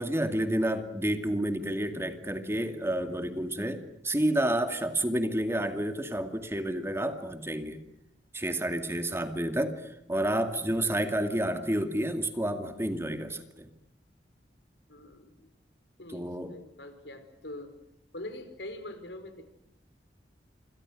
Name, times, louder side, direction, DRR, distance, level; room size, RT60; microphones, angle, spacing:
voice 1, 0.0-7.8 8.3-13.7 16.1-16.5, right 1 dB, 15° right, 7 dB, 2.3 m, -30 dB
voice 2, 14.9-15.5 16.0-17.7 18.1-19.5, left 1 dB, 85° left, 9 dB, 4.8 m, -44 dB
27.5 x 27.0 x 6.4 m, 0.80 s
head